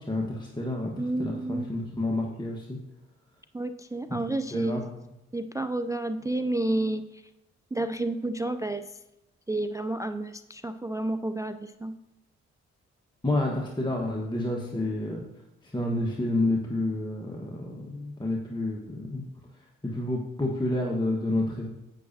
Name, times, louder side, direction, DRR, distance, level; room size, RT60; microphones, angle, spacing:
voice 1, 0.1-0.9 1.2-2.8 4.5-4.8 13.2-15.2 15.6-19.2 19.8-21.8, left 1 dB, 15° left, -2 dB, 1.4 m, -29 dB
voice 2, 1.0-1.7 3.5-4.9 5.3-7.2 7.7-9.0 9.5-12.0, right 2 dB, 10° right, 10 dB, 0.4 m, -30 dB
10.0 x 8.5 x 2.8 m, 0.94 s
hypercardioid pair, 40°, 33 cm